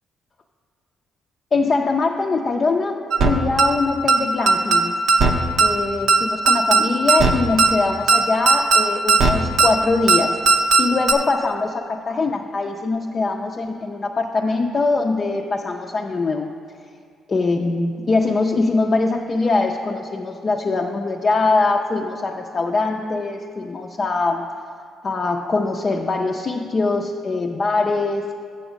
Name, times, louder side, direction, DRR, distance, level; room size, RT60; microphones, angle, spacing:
voice 1, 1.5-5.0 5.6-16.5 17.3-24.4 25.0-28.3, left 3 dB, 40° left, 1 dB, 0.4 m, -22 dB
sound 1, 3.1-3.3 3.6-3.7 4.1-4.2 4.5-4.8 5.1-5.3 5.6-5.7 6.1-6.2 6.5-6.8 7.1-7.3 7.6-7.7 8.1-8.2 8.5-8.8 9.1-9.3 9.6-9.7 10.1-10.2 10.5-10.8 11.1-11.2, right 4 dB, 65° right, 0.7 m, -14 dB
7.0 x 6.9 x 5.1 m, 2.2 s
cardioid pair, 90°, 0 cm